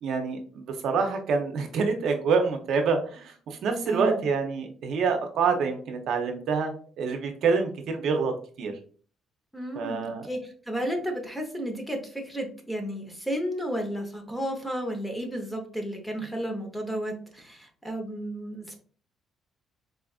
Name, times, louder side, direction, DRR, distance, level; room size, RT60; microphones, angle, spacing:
voice 1, 0.0-8.3 8.6-8.7 9.8-10.3, right 5 dB, 70° right, 5 dB, 0.6 m, -27 dB
voice 2, 3.9-4.2 9.5-18.7, equal, ahead, 3 dB, 0.8 m, -33 dB
4.1 x 2.4 x 2.3 m, 0.43 s
cardioid pair, 120°, 0 cm